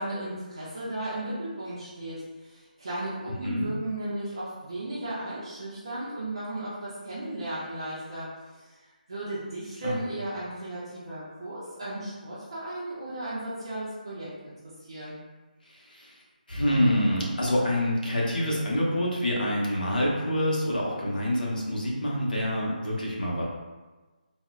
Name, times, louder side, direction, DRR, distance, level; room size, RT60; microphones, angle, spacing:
voice 1, 0.0-2.2 2.4-8.3 8.5-8.8 9.1-14.5 14.9-15.2, right 1 dB, 35° right, -9 dB, 0.5 m, -35 dB
voice 2, 16.5-23.4, left 1 dB, 65° left, -4 dB, 0.9 m, -26 dB
3.9 x 2.1 x 2.4 m, 1.2 s
figure-of-eight pair, 180°, 5 cm